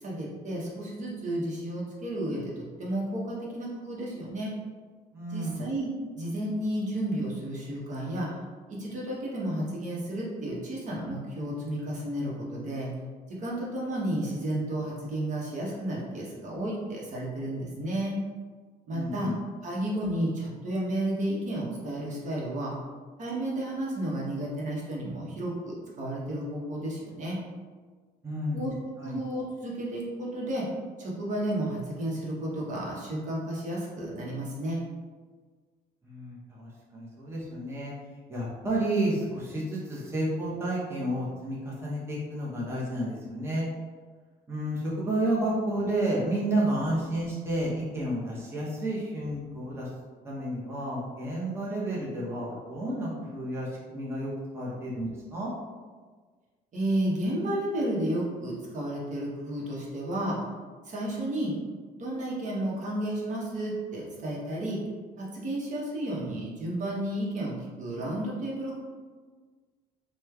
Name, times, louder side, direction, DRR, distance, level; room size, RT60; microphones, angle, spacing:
voice 1, 0.0-4.5 5.3-5.9 6.1-8.4 8.7-12.9 13.3-18.2 18.9-19.3 19.6-22.8 23.2-27.4 28.5-28.7 29.0-30.7 31.0-34.8 56.7-60.4 60.8-61.6 61.9-64.8 65.2-68.8, right 1 dB, 45° right, -4 dB, 0.9 m, -32 dB
voice 2, 5.1-5.6 18.9-19.3 28.2-28.7 29.0-29.2 36.0-37.9 38.3-43.7 44.5-49.9 50.2-55.5, right 1 dB, 15° right, -6 dB, 0.7 m, -31 dB
3.1 x 2.1 x 3.4 m, 1.5 s
cardioid pair, 110°, 17 cm